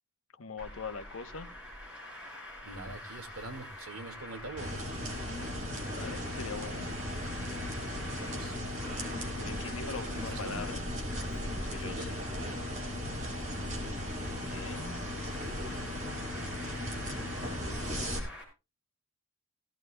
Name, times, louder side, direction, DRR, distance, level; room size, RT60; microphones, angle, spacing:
voice 1, 0.3-1.5 5.9-6.9 9.3-10.8 11.3-12.2 14.3-15.0, left 4 dB, 70° left, 8 dB, 1.0 m, -42 dB
Traffic noise roadway noise, 0.6-18.4, left 1 dB, 5° right, 5.4 m, -45 dB
voice 2, 2.6-4.8 8.1-8.6 10.1-10.6 11.8-12.1 13.6-13.8, right 2 dB, 80° right, 6 dB, 1.8 m, -44 dB
sound 1, 4.6-18.2, left 1 dB, 35° right, 3.4 m, -37 dB
16.5 x 15.5 x 2.2 m, 0.28 s
head